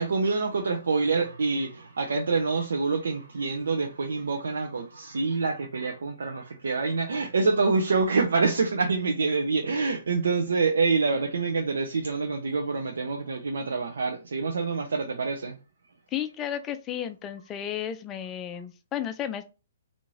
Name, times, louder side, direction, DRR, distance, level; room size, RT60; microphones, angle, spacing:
voice 1, 0.0-15.6, right 4 dB, 60° right, 0.5 m, -26 dB
voice 2, 16.1-19.4, left 10 dB, 20° left, 0.4 m, -33 dB
3.5 x 2.5 x 3.0 m
figure-of-eight pair, 120°, 0 cm